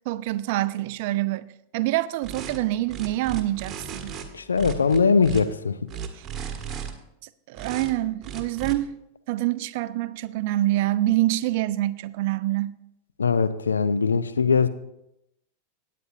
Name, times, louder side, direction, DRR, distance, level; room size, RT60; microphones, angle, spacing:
voice 1, 0.1-1.5 1.7-4.1 6.1-6.3 7.5-8.9 9.3-12.7, right 16 dB, 50° right, 0.4 m, -26 dB
sound 1, 2.2-2.6 2.9-4.2 4.5-5.4 5.9-6.9 7.5-7.9 8.2-8.7, right 7 dB, 25° right, 1.3 m, -35 dB
voice 2, 4.3-5.8 13.2-14.7, left 5 dB, 75° left, 0.5 m, -21 dB
17.0 x 9.2 x 2.7 m
figure-of-eight pair, 90°, 0 cm